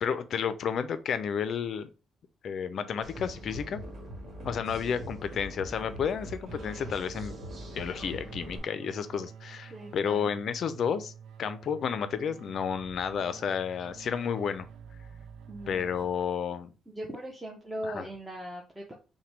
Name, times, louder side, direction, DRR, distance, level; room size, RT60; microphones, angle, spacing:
voice 1, 0.0-1.9 2.4-3.8 4.4-7.3 7.7-11.1 11.4-14.7 15.7-16.7 17.8-18.1, left 7 dB, 60° left, 12 dB, 0.5 m, -31 dB
sound 1, 3.0-8.6, right 1 dB, 50° right, 1.7 m, -42 dB
sound 2, 6.4-16.7, right 7 dB, 90° right, 0.5 m, -49 dB
voice 2, 9.7-10.3 15.5-15.8 16.9-18.9, equal, 10° right, -2 dB, 0.8 m, -39 dB
5.8 x 2.2 x 3.2 m, 0.33 s
cardioid pair, 115°, 0 cm